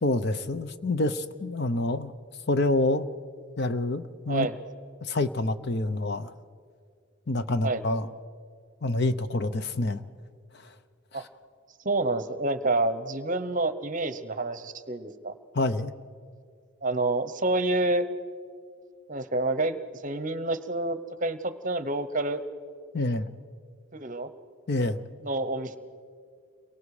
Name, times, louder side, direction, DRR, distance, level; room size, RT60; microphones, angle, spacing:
voice 1, 0.0-2.1 2.5-3.1 3.6-4.5 5.0-6.3 7.3-8.1 8.8-10.0 15.5-15.9 22.9-23.3 24.7-25.0, left 2 dB, 50° left, 11 dB, 0.7 m, -27 dB
voice 2, 11.8-15.3 16.8-18.0 19.1-22.4 23.9-24.3 25.2-25.8, right 2 dB, 35° right, 12 dB, 0.9 m, -28 dB
30.0 x 23.0 x 4.9 m, 2.1 s
head